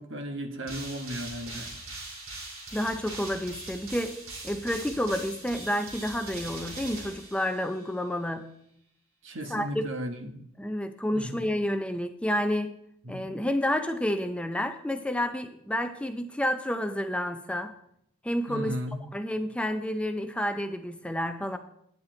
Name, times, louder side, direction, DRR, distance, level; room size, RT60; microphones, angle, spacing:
voice 1, 0.0-1.7 9.2-10.4 11.1-11.4 13.0-13.2 18.5-19.0, equal, 65° right, 6 dB, 1.3 m, -35 dB
sound 1, 0.7-7.9, right 2 dB, 85° right, 2.7 m, -41 dB
voice 2, 2.7-4.2 4.4-8.5 9.5-9.8 10.6-12.8 13.1-17.7 18.2-18.8 19.1-21.6, left 1 dB, 5° left, 8 dB, 0.5 m, -30 dB
9.8 x 9.6 x 3.8 m, 0.72 s
head